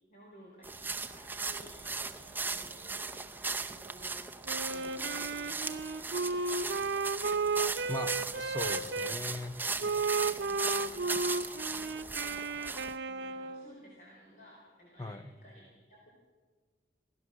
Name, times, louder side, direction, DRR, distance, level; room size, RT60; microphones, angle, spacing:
voice 1, 0.1-4.4 4.7-6.7 10.1-11.4 11.7-16.1, right 1 dB, 45° left, -2 dB, 4.3 m, -56 dB
sound 1, 0.6-13.0, right 4 dB, 10° right, 0.6 m, -38 dB
sound 2, 1.0-5.6 7.7-15.5, left 1 dB, 65° left, 3.7 m, -64 dB
Wind instrument woodwind instrument, 4.5-9.2 9.8-13.7, right 4 dB, 75° right, 0.7 m, -34 dB
voice 2, 7.9-9.6 15.0-15.3, left 1 dB, 20° left, 8 dB, 1.0 m, -39 dB
27.0 x 16.5 x 6.3 m, 1.4 s
head